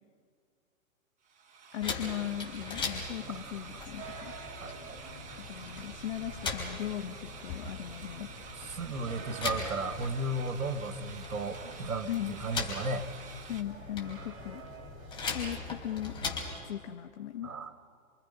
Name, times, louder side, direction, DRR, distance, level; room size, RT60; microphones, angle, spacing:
sound 1, 1.2-13.6, right 6 dB, 15° right, 1.4 m, -49 dB
voice 1, 1.7-4.3 5.4-8.3 12.1-12.4 13.5-14.6 15.3-16.2 16.6-17.5, left 11 dB, 50° left, 7 dB, 1.5 m, -38 dB
sound 2, 1.8-16.6, left 4 dB, 10° left, 3.9 m, -40 dB
sound 3, 2.6-16.7, right 4 dB, 40° right, 4.5 m, -50 dB
voice 2, 3.2-3.5 4.6-5.5 8.5-13.1 14.2-14.3 17.4-17.7, right 2 dB, 75° right, 8 dB, 2.1 m, -35 dB
29.0 x 25.5 x 5.6 m, 2.2 s
hypercardioid pair, 135°, 42 cm